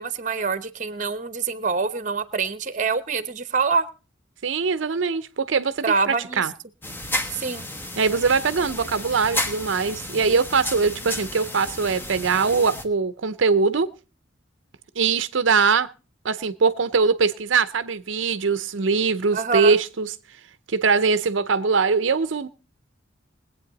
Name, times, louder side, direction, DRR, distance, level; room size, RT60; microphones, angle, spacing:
voice 1, 0.0-3.8 5.8-6.4 7.3-7.6 19.3-19.8, right 5 dB, 40° right, 14 dB, 0.9 m, -25 dB
voice 2, 4.4-6.5 8.0-13.9 15.0-15.9 16.2-20.1 20.7-22.5, right 5 dB, 75° right, 13 dB, 0.6 m, -22 dB
sound 1, 6.8-12.8, left 1 dB, 10° left, 1.1 m, -32 dB
21.0 x 8.6 x 4.0 m, 0.34 s
head